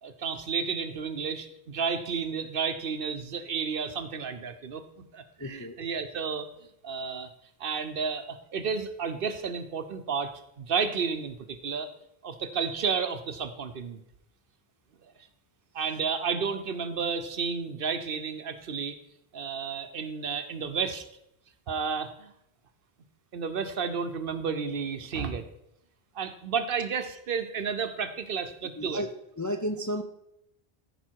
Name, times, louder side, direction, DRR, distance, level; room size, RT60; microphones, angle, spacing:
voice 1, 0.0-6.5 6.8-7.3 7.6-11.9 12.2-14.0 15.7-19.0 19.3-21.0 21.7-22.3 23.3-25.5 26.1-29.0, right 6 dB, 60° right, 9 dB, 0.9 m, -32 dB
voice 2, 5.4-5.8 28.8-29.1 29.4-30.0, equal, 25° left, 5 dB, 0.4 m, -32 dB
14.5 x 5.0 x 4.5 m, 0.80 s
omnidirectional pair, 1.1 m